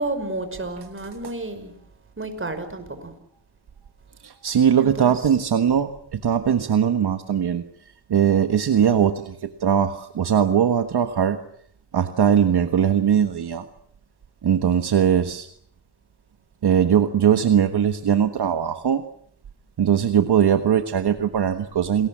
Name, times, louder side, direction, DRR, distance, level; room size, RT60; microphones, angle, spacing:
voice 1, 0.0-1.7 2.2-3.1 4.8-5.2, right 2 dB, 30° right, 8 dB, 5.9 m, -31 dB
voice 2, 4.2-7.6 8.1-11.4 11.9-13.7 14.4-15.5 16.6-19.0 19.8-22.1, right 8 dB, 65° right, 8 dB, 1.5 m, -20 dB
28.5 x 21.0 x 7.4 m, 0.66 s
cardioid pair, 85°, 43 cm